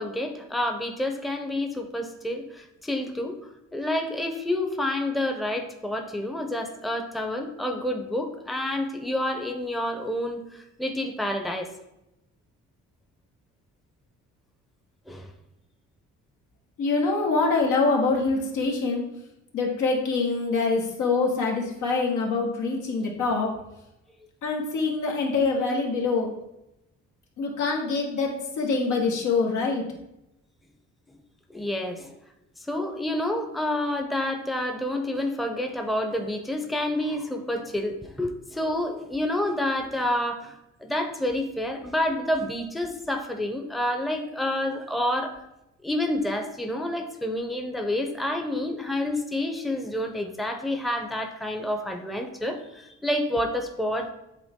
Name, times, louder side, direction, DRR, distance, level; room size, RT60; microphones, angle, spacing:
voice 1, 0.0-3.4 3.7-11.7 15.1-15.3 31.5-32.1 32.7-40.5 40.8-45.4 45.8-54.1, left 1 dB, ahead, 4 dB, 0.7 m, -28 dB
voice 2, 16.8-19.0 19.5-23.5 24.4-26.3 27.4-29.8, left 3 dB, 80° left, 0 dB, 1.5 m, -25 dB
8.2 x 3.5 x 3.6 m, 0.88 s
cardioid pair, 90°, 30 cm